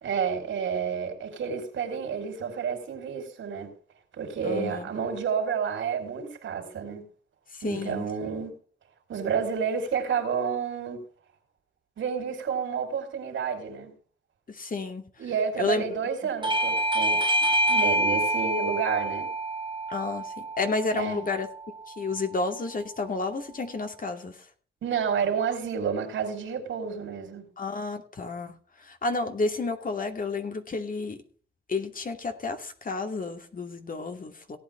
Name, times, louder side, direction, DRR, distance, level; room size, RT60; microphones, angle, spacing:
voice 1, 0.0-3.7 4.1-7.1 7.6-8.5 9.1-11.0 12.0-13.9 15.2-19.3 20.9-21.2 24.8-27.5, right 6 dB, 75° right, 3.7 m, -30 dB
voice 2, 4.4-4.9 7.5-8.0 14.5-15.1 15.6-15.8 19.9-21.5 21.9-24.5 27.6-31.2 31.7-34.6, left 3 dB, 45° left, 2.6 m, -31 dB
Bell / Doorbell, 16.4-21.6, right 1 dB, 25° right, 1.6 m, -26 dB
17.5 x 8.8 x 3.4 m
cardioid pair, 75°, 20 cm